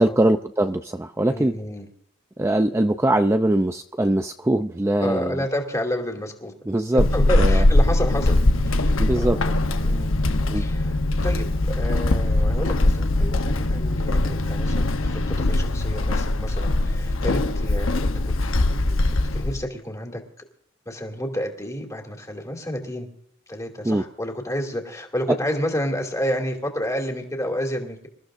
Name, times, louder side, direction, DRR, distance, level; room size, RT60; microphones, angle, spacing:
voice 1, 0.0-1.5 2.4-5.4 6.7-7.1 7.4-7.6 9.0-9.4 10.5-10.6 23.8-24.0, right 1 dB, 15° right, 6 dB, 0.5 m, -22 dB
voice 2, 1.3-1.9 5.0-6.5 7.1-9.5 9.8-11.0 11.2-18.1 18.4-19.0 19.3-20.4 20.9-23.1 23.5-28.1, equal, 15° left, 1 dB, 2.5 m, -30 dB
Walk footsteps / Squeak, 7.0-19.6, left 2 dB, 80° left, 1.0 m, -21 dB
27.0 x 14.0 x 2.6 m, 0.72 s
head